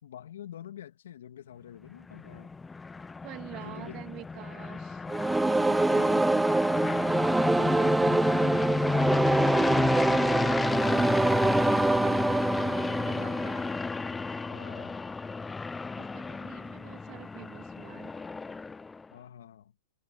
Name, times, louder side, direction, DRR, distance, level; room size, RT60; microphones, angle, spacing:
voice 1, 0.0-2.6 3.6-4.0 5.5-6.7 7.5-8.8 14.5-15.1 19.1-19.7, left 10 dB, 80° left, 2.5 m, -46 dB
sound 1, 1.9-19.1, left 4 dB, 10° left, 0.9 m, -32 dB
voice 2, 3.2-5.1 5.4-5.9 9.5-14.5 16.0-18.1, right 17 dB, 40° right, 2.2 m, -47 dB
sound 2, 5.1-14.0, right 2 dB, 5° right, 0.5 m, -25 dB
hypercardioid pair, 125°, 0 cm